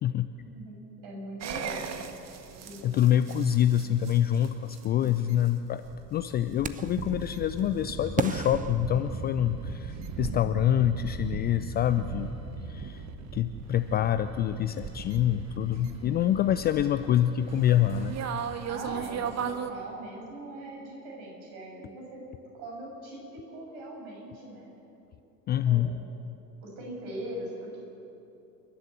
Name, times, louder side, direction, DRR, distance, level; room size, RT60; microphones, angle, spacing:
voice 1, 0.4-0.8 1.0-2.0 2.6-3.3 5.0-5.1 10.2-10.5 15.8-16.2 18.7-22.2 22.5-24.7 25.7-26.1 26.6-27.8, right 1 dB, 55° right, 0 dB, 7.0 m, -41 dB
sound 1, 1.4-19.7, right 6 dB, 30° right, 1.5 m, -38 dB
voice 2, 2.8-12.4 12.7-13.0 13.3-18.2 25.5-25.9, left 11 dB, 20° left, 11 dB, 0.4 m, -26 dB
sound 2, 6.6-7.1 8.2-9.7, right 6 dB, 15° right, 0.7 m, -34 dB
28.5 x 12.0 x 8.3 m, 2.8 s
figure-of-eight pair, 70°, 49 cm